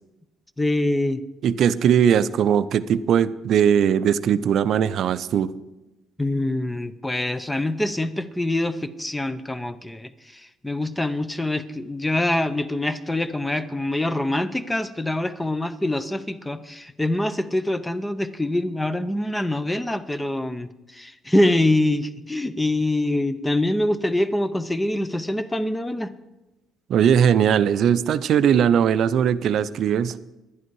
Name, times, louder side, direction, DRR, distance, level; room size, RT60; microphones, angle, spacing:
voice 1, 0.6-1.2 6.2-26.1, left 1 dB, 10° left, 13 dB, 0.5 m, -25 dB
voice 2, 1.4-5.5 26.9-30.2, right 8 dB, 55° right, 15 dB, 0.4 m, -19 dB
11.0 x 11.0 x 4.6 m, 1.0 s
cardioid pair, 140°, 0 cm